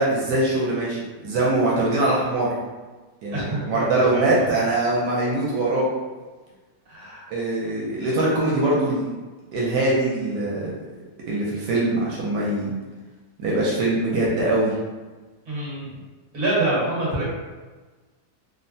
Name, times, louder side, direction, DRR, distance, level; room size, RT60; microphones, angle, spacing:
voice 1, 0.0-2.5 3.2-5.9 7.3-9.1 9.5-10.7 11.3-12.7 13.4-14.8, right 2 dB, 80° right, -5 dB, 1.2 m, -22 dB
voice 2, 3.3-4.3 6.9-7.2 15.5-15.9 16.3-17.3, right 2 dB, 35° right, -7 dB, 1.2 m, -26 dB
3.3 x 2.1 x 2.6 m, 1.3 s
omnidirectional pair, 1.9 m